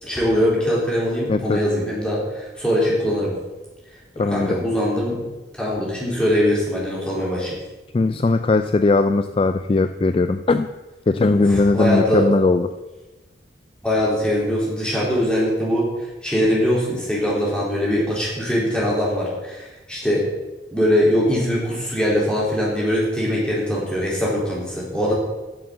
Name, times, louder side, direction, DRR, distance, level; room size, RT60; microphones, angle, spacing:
voice 1, 0.0-3.3 4.3-5.2 5.6-7.6 11.3-12.3 13.8-15.9 16.2-20.3 20.7-25.1, equal, 5° left, -6 dB, 3.7 m, -22 dB
voice 2, 1.3-1.6 4.2-4.6 7.9-10.7 11.1-12.7, left 3 dB, 30° left, 10 dB, 0.3 m, -19 dB
9.4 x 7.1 x 7.5 m, 1.1 s
head